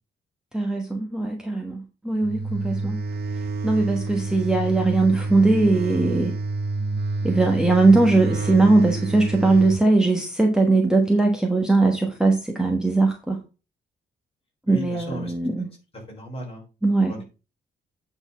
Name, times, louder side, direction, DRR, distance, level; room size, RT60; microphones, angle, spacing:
voice 1, 0.5-3.0 3.6-6.3 7.2-13.4 14.7-15.7 16.8-17.2, right 3 dB, 5° right, 1.2 m, -20 dB
sound 1, 2.2-9.8, right 3 dB, 65° right, 0.7 m, -28 dB
voice 2, 14.7-15.4 16.1-16.6 17.1-17.2, left 1 dB, 30° left, 3.7 m, -35 dB
8.8 x 4.1 x 5.4 m
wide cardioid pair, 150°, 19 cm